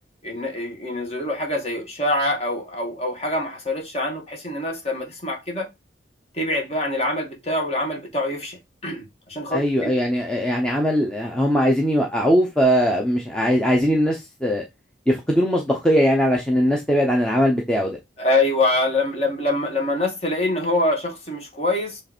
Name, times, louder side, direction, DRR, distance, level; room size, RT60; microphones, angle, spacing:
voice 1, 0.2-5.7 6.3-9.9 18.2-22.0, left 2 dB, 35° left, 2.1 m, -25 dB
voice 2, 9.5-14.6 15.1-18.0, equal, 5° left, 0.8 m, -20 dB
7.5 x 3.3 x 4.4 m
head